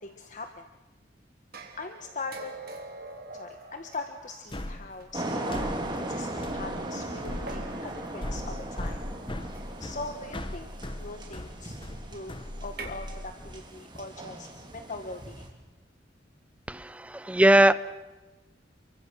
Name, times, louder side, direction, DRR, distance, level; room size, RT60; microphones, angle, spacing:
voice 1, 0.0-0.6 1.8-2.5 3.3-9.0 9.8-10.7 11.0-12.4 12.6-15.5, left 3 dB, 45° left, 6 dB, 1.4 m, -41 dB
sound 1, 1.5-5.0 6.0-6.1 7.5-8.3 9.5-9.9 12.6-12.9, right 3 dB, 55° right, 3.3 m, -44 dB
sound 2, 4.5-13.6, left 1 dB, 30° left, 1.1 m, -39 dB
sound 3, 5.1-15.5, right 1 dB, 25° right, 4.0 m, -38 dB
voice 2, 16.7-17.7, right 1 dB, 5° right, 14 dB, 0.8 m, -20 dB
30.0 x 23.0 x 6.3 m, 1.1 s
head